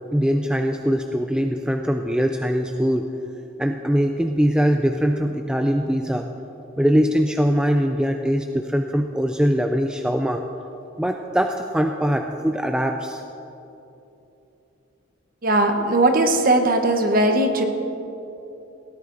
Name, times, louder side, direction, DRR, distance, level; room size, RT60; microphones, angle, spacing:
voice 1, 0.1-3.1 3.6-6.3 6.8-10.4 11.0-13.2, equal, 5° right, 4 dB, 0.3 m, -22 dB
voice 2, 15.4-17.6, right 1 dB, 45° right, 6 dB, 1.0 m, -19 dB
17.0 x 10.5 x 3.8 m, 2.9 s
head